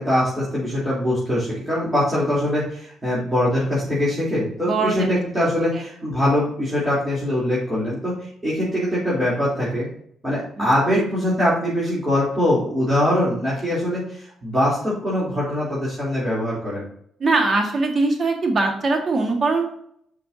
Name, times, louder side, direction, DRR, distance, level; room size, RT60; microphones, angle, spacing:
voice 1, 0.0-9.9 10.2-16.9, left 1 dB, 10° right, -9 dB, 3.5 m, -22 dB
voice 2, 4.6-5.1 5.7-5.8 10.6-11.0 17.2-19.7, right 3 dB, 40° right, 2 dB, 1.8 m, -22 dB
9.8 x 6.0 x 2.8 m, 0.67 s
cardioid pair, 90°, 0 cm